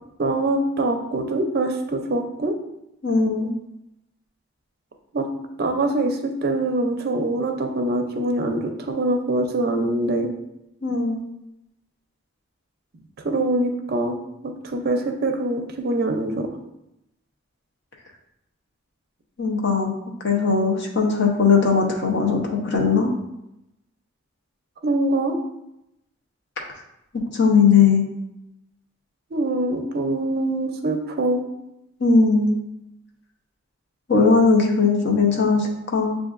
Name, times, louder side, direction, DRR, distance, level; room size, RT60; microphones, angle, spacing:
voice 1, 0.2-2.6 5.1-5.3 5.6-10.3 13.2-14.2 14.4-16.5 24.8-25.4 29.3-31.4, right 2 dB, 45° right, 4 dB, 0.5 m, -24 dB
voice 2, 3.0-3.6 10.8-11.2 19.4-19.9 20.2-23.1 27.3-28.1 32.0-32.6 34.1-36.2, left 4 dB, 55° left, 0 dB, 0.8 m, -19 dB
7.2 x 2.5 x 2.5 m, 0.85 s
head